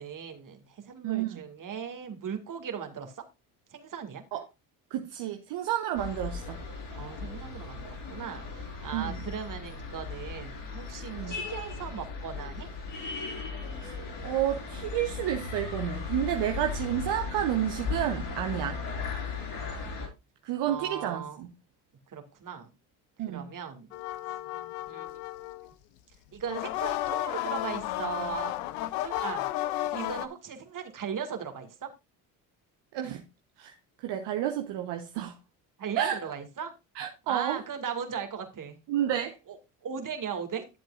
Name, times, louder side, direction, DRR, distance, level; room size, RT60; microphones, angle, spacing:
voice 1, 0.0-3.2 3.7-4.2 6.9-12.7 20.7-21.4 22.1-22.7 23.3-23.9 24.9-25.2 26.3-28.5 29.0-29.4 29.8-31.9 35.8-36.7 37.3-38.8 39.5-39.6 39.8-40.7, right 7 dB, 45° right, 2.2 m, -38 dB
voice 2, 1.0-1.4 4.3-4.4 4.9-6.6 8.9-9.2 11.1-11.4 13.8-13.9 14.2-18.8 20.4-21.5 23.2-23.5 32.9-33.2 33.6-33.7 34.0-35.3 36.0-36.2 37.0-37.6 38.9-39.4, right 11 dB, 65° right, 1.0 m, -30 dB
sound 1, 5.9-20.1, left 4 dB, 65° left, 5.3 m, -37 dB
sound 2, 23.9-25.7 26.4-30.3, left 15 dB, 90° left, 0.7 m, -33 dB
12.0 x 7.7 x 2.5 m
supercardioid pair, 65°, 44 cm